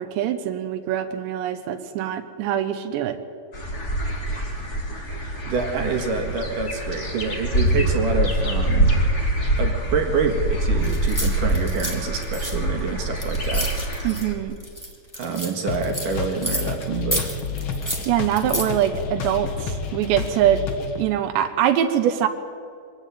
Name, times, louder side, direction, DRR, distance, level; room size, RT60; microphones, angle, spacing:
voice 1, 0.0-3.2 14.0-14.6 18.1-20.7 21.0-22.3, right 10 dB, 90° right, 7 dB, 3.3 m, -23 dB
sound 1, 3.5-14.3, right 1 dB, 25° left, 1.9 m, -24 dB
voice 2, 5.5-8.9 9.6-13.7 15.1-17.3, right 5 dB, 60° right, 3 dB, 2.9 m, -27 dB
sound 2, 10.8-14.3 14.6-16.8 17.1-18.7, equal, 5° left, 1.8 m, -30 dB
sound 3, 15.7-21.0, left 4 dB, 75° left, 1.1 m, -30 dB
23.5 x 17.0 x 9.2 m, 2.3 s
omnidirectional pair, 4.9 m